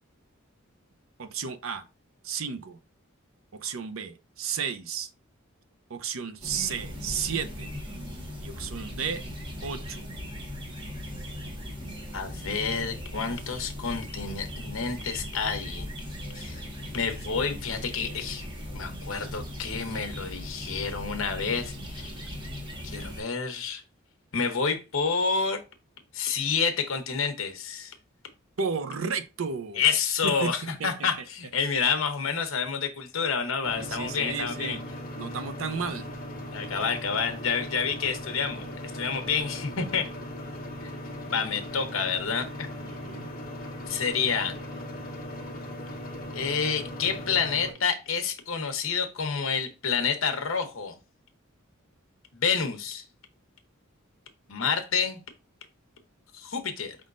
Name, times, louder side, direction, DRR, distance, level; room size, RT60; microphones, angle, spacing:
voice 1, 1.2-1.8 2.2-2.8 3.5-5.1 5.9-7.7 8.4-9.2 9.6-10.1 28.6-29.8 30.2-30.5 30.8-31.1 33.8-34.8 35.2-36.1 39.2-39.3 42.8-43.3, right 6 dB, 70° right, 0.6 m, -33 dB
sound 1, 6.4-23.2, left 1 dB, 25° right, 1.3 m, -38 dB
voice 2, 12.1-15.9 16.3-16.6 16.9-18.4 18.7-22.1 22.8-23.8 24.3-25.6 26.1-27.9 29.7-34.8 36.5-40.1 40.8-40.9 41.3-42.7 43.9-44.5 46.3-51.0 52.3-53.0 54.5-55.2 56.3-57.0, left 6 dB, 70° left, 0.9 m, -29 dB
sound 2, 33.6-47.7, left 1 dB, 45° left, 1.0 m, -38 dB
5.3 x 3.6 x 2.5 m
head